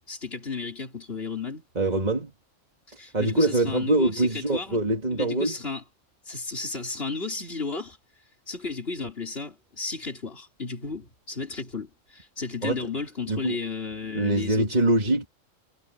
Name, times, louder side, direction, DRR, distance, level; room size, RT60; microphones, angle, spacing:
voice 1, 0.0-1.6 3.0-4.8 5.1-5.8 6.3-8.0 8.5-15.2, left 4 dB, 50° left, 4.2 m, -34 dB
voice 2, 1.8-2.3 3.1-5.6 12.6-12.9 13.3-13.6 14.1-15.3, right 2 dB, 35° right, 2.5 m, -24 dB
omnidirectional pair, 1.3 m